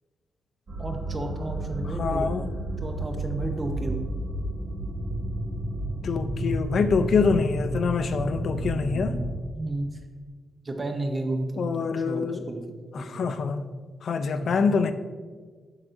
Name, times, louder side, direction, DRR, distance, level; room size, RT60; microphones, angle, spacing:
sound 1, 0.7-9.3, right 1 dB, 55° right, 1.7 m, -31 dB
voice 1, 0.8-2.3 2.8-4.0 9.5-9.9 10.6-12.6 13.0-13.3 14.4-14.5, right 2 dB, 25° right, 4 dB, 0.7 m, -32 dB
voice 2, 2.0-2.5 6.0-9.1 11.6-12.5 12.9-13.7 14.0-14.9, left 5 dB, 60° left, 9 dB, 0.4 m, -25 dB
7.8 x 5.9 x 2.6 m, 1.5 s
wide cardioid pair, 135°, 0 cm